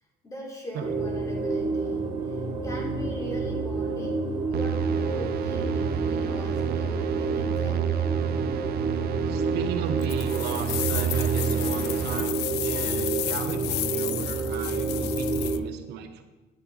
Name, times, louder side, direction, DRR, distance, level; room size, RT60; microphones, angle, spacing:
voice 1, 0.2-4.2 4.5-8.1, equal, 20° left, -2 dB, 3.5 m, -40 dB
sound 1, 0.8-15.6, right 3 dB, 30° right, 3.1 m, -29 dB
sound 2, 4.5-12.2, right 10 dB, 70° right, 0.7 m, -30 dB
voice 2, 9.3-16.2, right 8 dB, 85° right, 7 dB, 0.9 m, -36 dB
sound 3, 10.0-15.6, left 16 dB, 75° left, 0.4 m, -33 dB
10.0 x 8.8 x 4.1 m, 1.2 s
cardioid pair, 110°, 17 cm